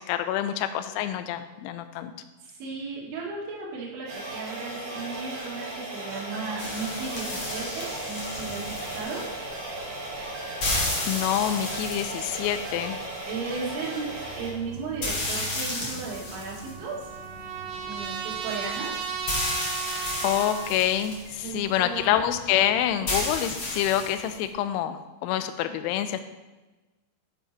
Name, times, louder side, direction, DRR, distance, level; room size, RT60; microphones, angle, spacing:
voice 1, 0.0-2.1 11.1-13.0 20.2-26.2, left 11 dB, 85° left, 9 dB, 2.8 m, -27 dB
voice 2, 2.4-9.3 13.3-17.1 17.9-19.0 21.4-22.1, right 4 dB, 70° right, -4 dB, 4.1 m, -35 dB
sound 1, 4.0-14.5, right 2 dB, 50° right, 4.6 m, -36 dB
sound 2, 6.6-24.5, left 1 dB, 45° left, 2.2 m, -34 dB
Trumpet, 16.1-20.8, right 7 dB, 85° right, 2.4 m, -35 dB
10.5 x 5.0 x 5.0 m, 1.1 s
omnidirectional pair, 5.8 m